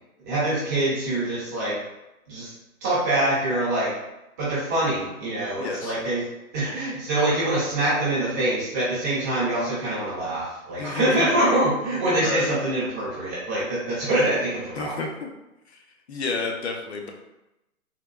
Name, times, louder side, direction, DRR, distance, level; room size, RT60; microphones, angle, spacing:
voice 1, 0.2-1.8 2.3-2.5 2.8-3.9 4.4-6.2 6.5-14.9, right 1 dB, 10° right, -9 dB, 0.6 m, -24 dB
voice 2, 5.6-5.9 10.8-11.3 12.2-12.5 14.8-15.3 16.1-17.1, left 4 dB, 50° left, 2 dB, 0.6 m, -30 dB
3.6 x 2.7 x 2.2 m, 0.92 s
hypercardioid pair, 150°, 43 cm